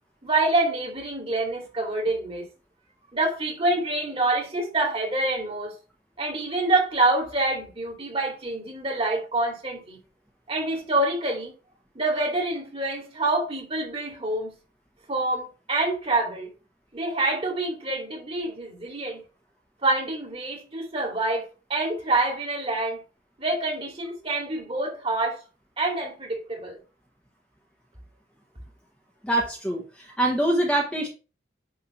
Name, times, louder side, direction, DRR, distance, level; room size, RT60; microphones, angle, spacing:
voice 1, 0.2-2.5 3.1-5.7 6.2-10.0 10.5-11.5 11.9-14.5 15.1-16.5 16.9-19.2 19.8-23.0 23.4-25.4 25.8-26.8, right 2 dB, 30° right, 2.6 m, -26 dB
voice 2, 29.2-31.1, right 1 dB, 5° left, 1.3 m, -24 dB
10.0 x 3.6 x 4.3 m
head